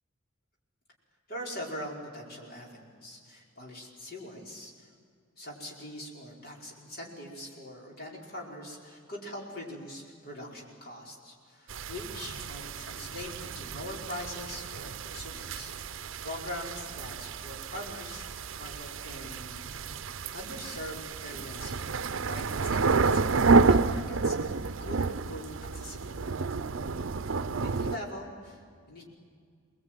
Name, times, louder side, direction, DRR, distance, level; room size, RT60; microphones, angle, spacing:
voice 1, 1.3-4.9 5.4-18.3 18.6-19.9 20.3-24.5 24.8-26.3 27.1-29.0, left 1 dB, 50° left, -2 dB, 5.2 m, -42 dB
sound 1, 11.7-28.0, right 4 dB, 75° right, 0.6 m, -30 dB
24.5 x 20.5 x 9.1 m, 2.1 s
head